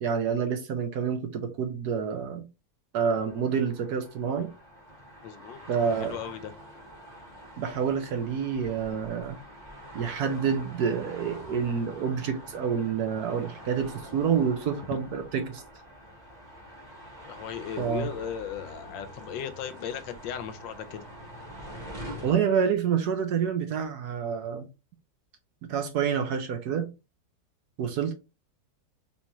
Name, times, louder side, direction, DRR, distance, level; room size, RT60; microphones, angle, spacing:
voice 1, 0.0-2.5 2.9-4.5 5.7-6.2 7.6-9.4 9.9-15.6 17.8-18.1 22.2-24.7 25.6-26.9 27.8-28.1, right 7 dB, 65° right, 1.2 m, -28 dB
sound 1, 3.0-22.3, equal, 25° right, 1.1 m, -45 dB
voice 2, 5.2-5.6 6.0-6.5 17.2-21.1, left 8 dB, 85° left, 1.4 m, -37 dB
4.2 x 3.5 x 3.0 m
omnidirectional pair, 2.0 m